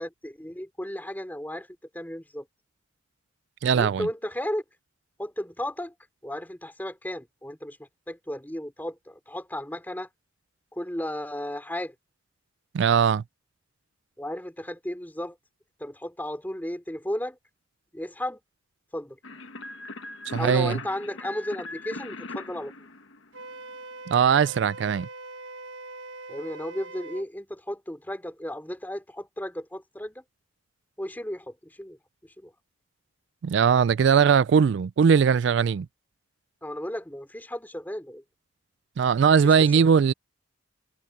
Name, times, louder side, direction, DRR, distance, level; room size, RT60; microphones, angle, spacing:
voice 1, 0.0-1.7 1.9-2.5 3.7-4.6 5.2-5.9 6.2-10.1 10.7-11.9 14.2-15.4 15.8-17.4 17.9-18.4 18.9-19.2 20.4-22.7 26.3-30.2 31.0-32.5 36.6-38.2 39.4-39.9, left 1 dB, 10° left, 3.0 m, -34 dB
voice 2, 3.6-4.1 12.7-13.2 20.3-20.8 24.1-25.1 33.4-35.9 39.0-40.1, right 6 dB, 60° right, 0.3 m, -20 dB
sound 1, 19.2-23.7, left 2 dB, 75° left, 1.4 m, -40 dB
Wind instrument woodwind instrument, 23.3-27.3, right 2 dB, 80° right, 6.8 m, -42 dB
head